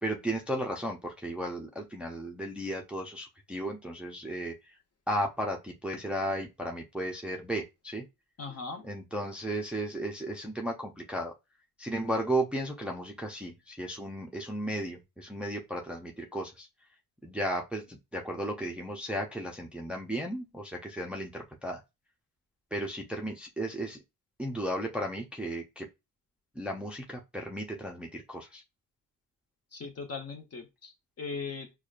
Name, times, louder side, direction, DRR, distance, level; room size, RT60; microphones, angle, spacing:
voice 1, 0.0-4.8 5.1-8.0 8.8-11.3 11.8-16.7 17.2-21.8 22.7-24.0 24.4-25.9 26.6-28.6, right 1 dB, 5° right, 0.5 m, -34 dB
voice 2, 8.4-8.9 29.7-31.7, left 4 dB, 40° left, 1.0 m, -39 dB
4.7 x 2.2 x 2.4 m
cardioid pair, 75°, 37 cm